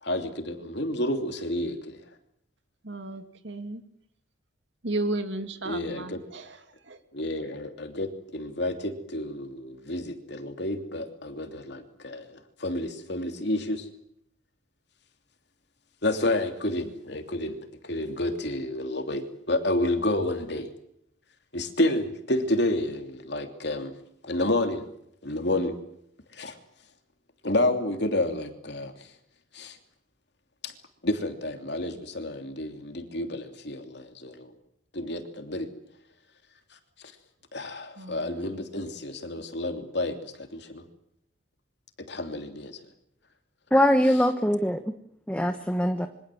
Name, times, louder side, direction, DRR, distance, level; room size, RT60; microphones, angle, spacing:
voice 1, 0.0-2.0 5.6-6.2 7.1-13.9 16.0-17.6 17.8-20.7 21.5-23.9 24.2-24.9 25.2-25.7 26.3-26.6 27.4-28.9 29.5-29.8 30.6-30.7 31.0-34.5 34.9-35.7 37.5-40.8 42.1-42.8, left 1 dB, 60° left, 3.1 m, -30 dB
voice 2, 2.8-3.8 4.8-6.5 6.9-7.0 38.0-38.3, right 2 dB, 65° right, 2.6 m, -33 dB
voice 3, 43.7-44.8 45.3-46.1, equal, 5° left, 1.1 m, -22 dB
27.5 x 24.5 x 7.8 m
head